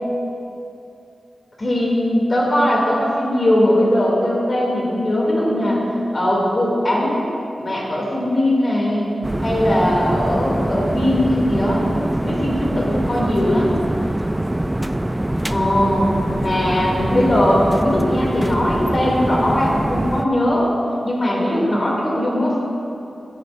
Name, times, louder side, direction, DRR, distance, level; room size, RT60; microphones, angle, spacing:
voice 1, 1.6-5.8 6.1-7.3 7.6-9.1 9.4-13.8 15.5-16.1 16.4-20.7 21.0-22.6, left 1 dB, 45° left, -4 dB, 2.7 m, -19 dB
sound 1, 9.2-20.3, right 1 dB, 15° right, 0.3 m, -24 dB
15.0 x 9.9 x 2.6 m, 2.7 s
cardioid pair, 60°, 0 cm